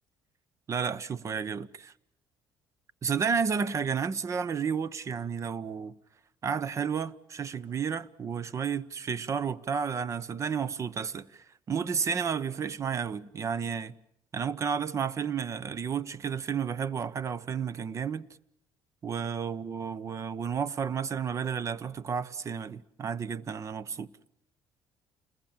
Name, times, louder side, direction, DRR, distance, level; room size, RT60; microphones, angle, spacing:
voice 1, 0.7-1.9 3.0-6.0 6.4-13.9 14.3-18.2 19.0-24.1, right 6 dB, 40° right, 0.9 m, -32 dB
29.0 x 21.0 x 7.3 m
cardioid pair, 100°, 8 cm